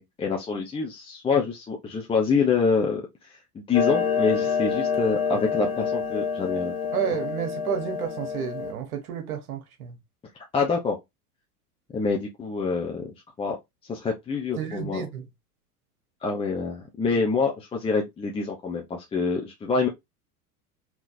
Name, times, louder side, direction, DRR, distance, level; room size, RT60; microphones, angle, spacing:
voice 1, 0.0-6.7 10.5-11.0 11.9-13.0 13.4-13.6 13.9-15.0 16.2-19.9, left 4 dB, 10° left, 0.6 m, -26 dB
Clock, 3.7-8.7, left 6 dB, 55° left, 1.0 m, -27 dB
voice 2, 6.9-10.0 14.6-15.3, right 8 dB, 65° right, 1.2 m, -31 dB
3.8 x 2.9 x 2.5 m
figure-of-eight pair, 85°, 47 cm